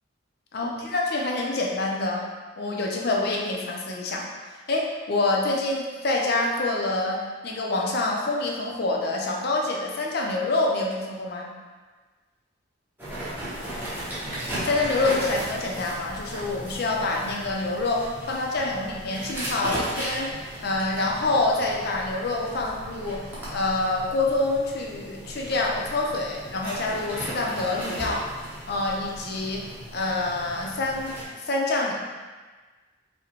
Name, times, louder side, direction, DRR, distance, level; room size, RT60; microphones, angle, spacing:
voice 1, 0.5-2.3 2.6-11.5 14.6-28.2 28.6-31.9, left 2 dB, 50° left, -1 dB, 0.5 m, -27 dB
sound 1, 13.0-31.2, right 1 dB, 10° right, 0.7 m, -36 dB
4.8 x 2.1 x 2.9 m, 1.3 s
head